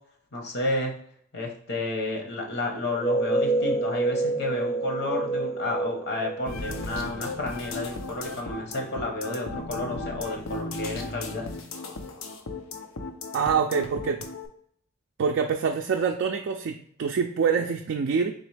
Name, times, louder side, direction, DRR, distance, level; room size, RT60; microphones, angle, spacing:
voice 1, 0.3-0.9 1.3-11.5, left 2 dB, 55° left, 1 dB, 1.0 m, -31 dB
sound 1, 2.8-7.4, right 2 dB, 30° left, 0.7 m, -28 dB
sound 2, 6.5-14.5, left 2 dB, 80° left, 0.6 m, -36 dB
voice 2, 13.3-14.2 15.2-18.3, right 6 dB, 60° right, 3 dB, 0.4 m, -25 dB
3.9 x 3.0 x 3.3 m, 0.64 s
head